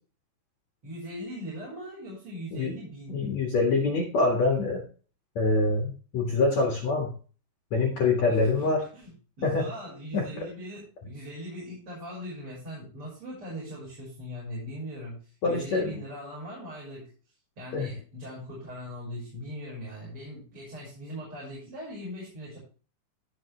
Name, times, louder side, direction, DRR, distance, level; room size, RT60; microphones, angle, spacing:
voice 1, 0.8-3.4 8.3-9.1 9.4-17.1 17.6-22.6, equal, 30° right, -6 dB, 6.4 m, -40 dB
voice 2, 3.1-4.8 5.4-7.1 7.7-8.8 9.4-9.7 10.1-10.4 15.4-15.9 17.7-17.9, left 3 dB, 50° left, 1 dB, 2.6 m, -25 dB
16.5 x 6.0 x 3.3 m, 0.38 s
omnidirectional pair, 4.9 m